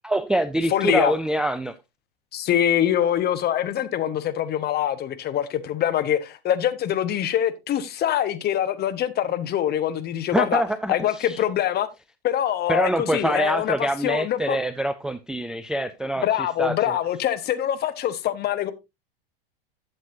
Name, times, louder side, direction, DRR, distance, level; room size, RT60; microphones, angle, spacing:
voice 1, 0.0-1.8 10.3-11.4 12.7-16.2 16.6-16.8, right 1 dB, ahead, 0.4 m, -25 dB
voice 2, 0.7-1.1 2.3-10.6 10.9-11.9 12.2-13.7 14.0-14.6 16.2-18.7, left 11 dB, 35° left, 1.2 m, -24 dB
11.5 x 7.9 x 2.7 m
hypercardioid pair, 95°, 30 cm